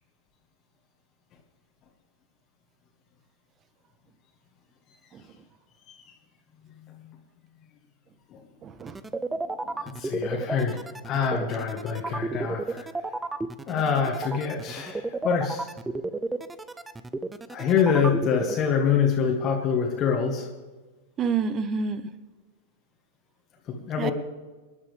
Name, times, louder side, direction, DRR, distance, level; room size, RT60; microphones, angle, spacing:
voice 1, 8.6-9.0 9.6-9.8 21.2-22.1 24.0-24.1, right 5 dB, 30° right, 14 dB, 1.0 m, -29 dB
sound 1, 8.8-18.6, right 3 dB, 10° right, 0.7 m, -32 dB
voice 2, 9.8-12.9 13.7-15.7 17.5-20.5 23.7-24.1, left 6 dB, 30° left, 1 dB, 1.9 m, -25 dB
25.5 x 11.0 x 3.5 m, 1.3 s
figure-of-eight pair, 90°, 0 cm